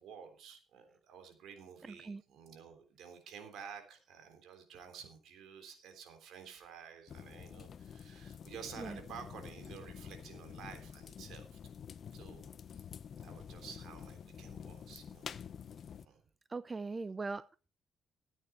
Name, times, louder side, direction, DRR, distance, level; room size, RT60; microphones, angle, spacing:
voice 1, 0.0-11.7 12.1-12.9 13.2-15.3 16.0-16.2, right 7 dB, 80° right, 3.5 m, -52 dB
sound 1, 7.1-16.1, left 7 dB, 55° left, 0.7 m, -49 dB
voice 2, 16.5-17.7, right 3 dB, 25° right, 0.5 m, -40 dB
14.0 x 9.3 x 4.4 m
cardioid pair, 90°, 0 cm